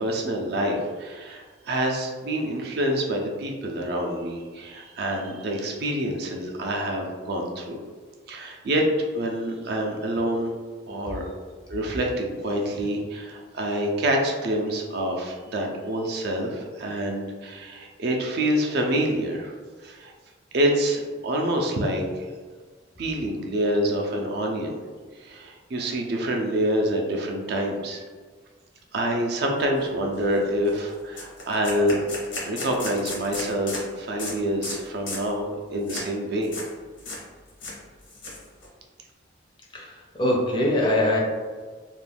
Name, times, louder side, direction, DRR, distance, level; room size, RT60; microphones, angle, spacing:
voice 1, 0.0-7.8 8.3-8.9 9.1-10.5 10.9-11.2 11.7-19.5 19.8-20.1 20.5-22.3 23.0-24.8 25.2-28.0 28.9-32.0 32.4-36.5, right 1 dB, 55° right, 1 dB, 0.4 m, -27 dB
sound 1, 29.8-29.9 30.2-30.4 30.7-30.8 31.1-33.8 34.2-34.3 34.6-34.8 35.1-35.3 35.9-36.1 36.4-36.7 37.0-37.2 37.5-38.7, left 2 dB, 75° left, 0.8 m, -34 dB
voice 2, 39.7-41.2, left 1 dB, 25° left, -2 dB, 0.4 m, -23 dB
2.4 x 2.2 x 3.3 m, 1.5 s
head